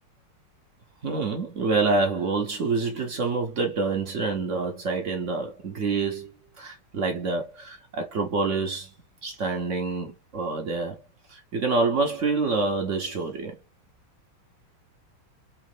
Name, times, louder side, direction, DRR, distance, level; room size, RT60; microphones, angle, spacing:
voice 1, 1.0-6.3 6.6-8.9 9.2-11.0 11.3-13.6, right 3 dB, 65° right, 0.7 m, -27 dB
4.4 x 3.1 x 3.1 m
omnidirectional pair, 2.3 m